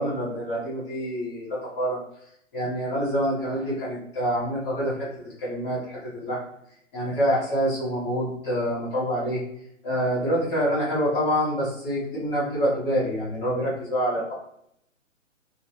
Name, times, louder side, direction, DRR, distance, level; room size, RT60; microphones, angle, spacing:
voice 1, 0.0-2.0 2.5-6.4 6.9-9.4 9.8-14.3, equal, 20° left, -9 dB, 1.5 m, -26 dB
3.1 x 2.7 x 3.0 m, 0.72 s
hypercardioid pair, 165°, 39 cm